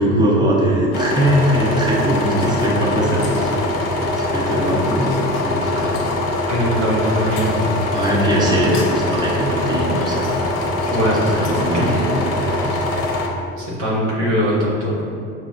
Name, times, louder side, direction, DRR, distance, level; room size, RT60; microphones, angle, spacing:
voice 1, 0.0-6.0 7.1-7.6 7.9-10.5 10.9-12.1 12.4-12.7, equal, 10° right, -4 dB, 0.7 m, -21 dB
sound 1, 0.9-13.3, left 2 dB, 50° left, 0.7 m, -22 dB
voice 2, 6.5-7.7 10.9-11.2 11.7-11.9 13.6-15.0, equal, 90° right, -7 dB, 1.1 m, -21 dB
5.9 x 2.1 x 2.4 m, 2.6 s
hypercardioid pair, 80°, 34 cm